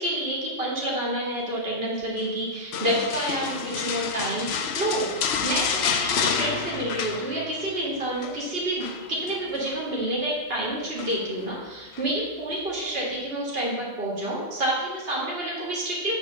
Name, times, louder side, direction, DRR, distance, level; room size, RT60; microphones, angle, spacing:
voice 1, 0.0-16.2, right 1 dB, 65° right, -5 dB, 2.2 m, -29 dB
sound 1, 2.7-7.7 8.0-8.4 8.8-9.8 11.0-11.4 11.9-12.1, left 6 dB, 90° left, 1.0 m, -29 dB
7.5 x 4.4 x 6.8 m, 1.2 s
omnidirectional pair, 1.1 m